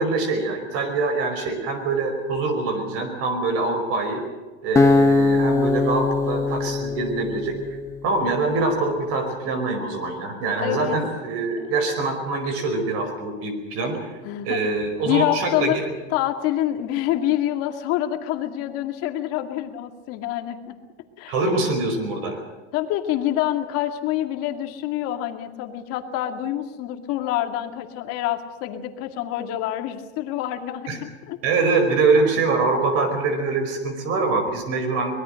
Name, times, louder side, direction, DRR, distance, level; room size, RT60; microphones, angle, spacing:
voice 1, 0.0-4.2 4.6-7.6 8.0-14.1 14.4-15.8 21.3-22.4 30.9-31.0 31.4-35.2, right 3 dB, 40° right, 7 dB, 4.9 m, -24 dB
Acoustic guitar, 4.8-8.0, left 3 dB, 10° left, 0.7 m, -20 dB
voice 2, 10.6-11.0 14.2-14.6 15.0-15.8 16.1-20.7 21.2-21.3 22.7-31.4, left 13 dB, 45° left, 6 dB, 2.3 m, -26 dB
24.5 x 21.0 x 6.5 m, 1.3 s
supercardioid pair, 145°, 34 cm